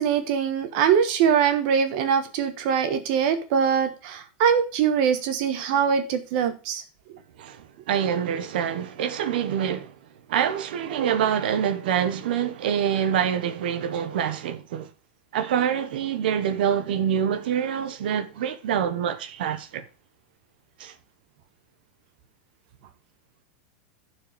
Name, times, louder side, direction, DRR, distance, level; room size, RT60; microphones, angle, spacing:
voice 1, 0.0-6.8, right 7 dB, 55° right, 1.3 m, -23 dB
voice 2, 7.4-9.9 10.3-14.9 15.3-19.9 20.8-20.9, right 9 dB, 80° right, 1.2 m, -26 dB
12.5 x 4.7 x 5.1 m
supercardioid pair, 155°, 5 cm